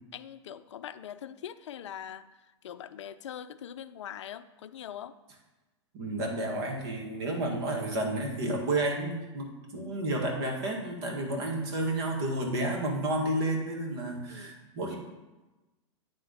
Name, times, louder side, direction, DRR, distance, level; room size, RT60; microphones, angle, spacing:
voice 1, 0.1-2.3 2.6-5.1 14.3-14.5, left 10 dB, 75° left, 12 dB, 0.4 m, -42 dB
voice 2, 5.9-15.0, right 1 dB, 60° right, 1 dB, 1.8 m, -31 dB
9.5 x 3.6 x 4.0 m, 1.1 s
hypercardioid pair, 105°, 15 cm